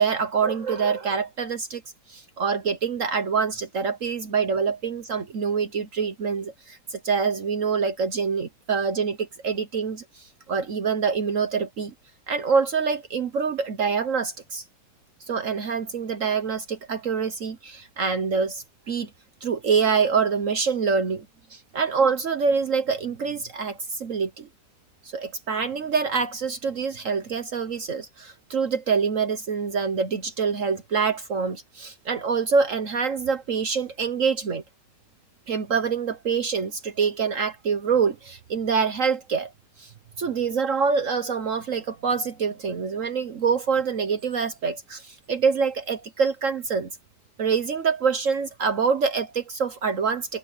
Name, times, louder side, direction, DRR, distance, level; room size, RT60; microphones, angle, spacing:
voice 1, 0.0-1.8 2.1-11.9 12.3-14.6 15.3-19.1 19.4-21.2 21.5-24.5 25.1-34.6 35.5-39.5 39.8-39.9 40.2-46.9 47.4-50.4, right 5 dB, 55° right, 1.3 m, -25 dB
omnidirectional pair, 1.8 m